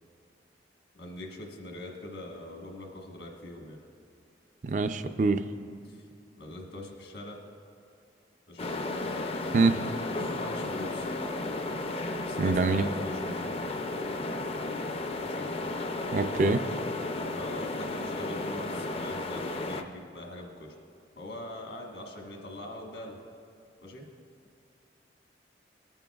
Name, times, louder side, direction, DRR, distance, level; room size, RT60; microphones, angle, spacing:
voice 1, 0.9-3.8 5.8-6.0 6.4-7.4 8.5-8.7 10.2-11.1 12.2-13.2 15.2-15.5 17.3-20.7 21.2-23.2 23.8-24.1, left 1 dB, 75° left, 0 dB, 1.4 m, -42 dB
voice 2, 4.6-5.4 9.5-9.8 12.4-12.8 16.1-16.6, right 3 dB, 45° right, 11 dB, 0.4 m, -24 dB
sound 1, 8.6-19.8, left 2 dB, 30° left, 0.4 m, -33 dB
19.5 x 8.9 x 2.3 m, 2.3 s
head